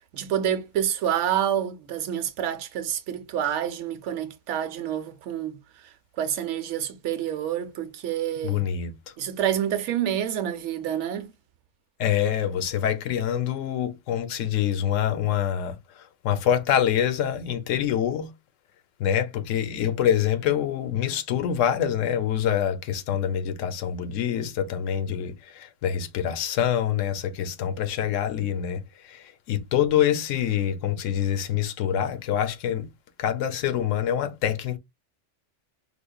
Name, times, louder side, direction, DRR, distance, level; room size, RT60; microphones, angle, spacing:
voice 1, 0.1-5.6 6.2-8.7 9.2-11.3, right 10 dB, 75° right, 0.9 m, -28 dB
voice 2, 8.4-9.1 12.0-18.3 19.0-32.9 33.2-34.8, left 9 dB, 90° left, 1.0 m, -26 dB
5.0 x 2.0 x 2.3 m
omnidirectional pair, 1.3 m